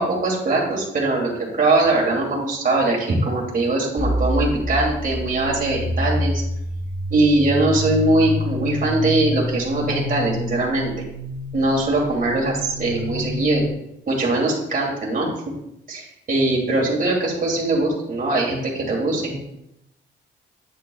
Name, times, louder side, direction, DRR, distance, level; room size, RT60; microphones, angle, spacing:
voice 1, 0.0-6.4 7.1-10.9 11.5-13.6 14.1-15.3 15.9-19.4, right 2 dB, 45° right, -3 dB, 2.6 m, -21 dB
sound 1, 4.0-13.7, left 1 dB, 10° left, 2.0 m, -27 dB
8.5 x 8.2 x 2.3 m, 0.83 s
cardioid pair, 90°, 20 cm